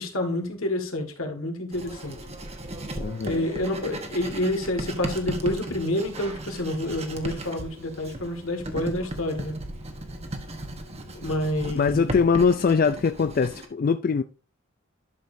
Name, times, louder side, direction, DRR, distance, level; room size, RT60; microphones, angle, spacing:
voice 1, 0.0-2.2 3.3-9.5 11.2-12.2, left 1 dB, 85° left, 1.9 m, -28 dB
Writing, 1.7-13.7, right 1 dB, 30° right, 1.1 m, -36 dB
voice 2, 3.0-3.5 11.7-14.2, left 5 dB, 45° left, 0.3 m, -22 dB
11.0 x 6.5 x 2.7 m
head